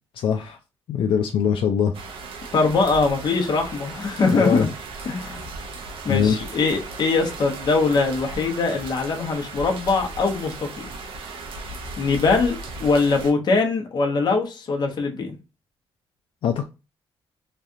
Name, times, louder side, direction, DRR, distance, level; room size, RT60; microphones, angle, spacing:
voice 1, 0.2-0.6 0.9-1.9 4.3-4.7 6.1-6.5 16.4-16.6, left 7 dB, 75° left, 0.4 m, -22 dB
sound 1, 1.9-13.3, right 3 dB, 75° right, 0.8 m, -37 dB
voice 2, 2.5-4.7 5.0-5.5 5.8-10.9 12.0-15.4, left 4 dB, 50° left, 1.0 m, -22 dB
3.2 x 2.4 x 2.6 m
cardioid pair, 95°, 9 cm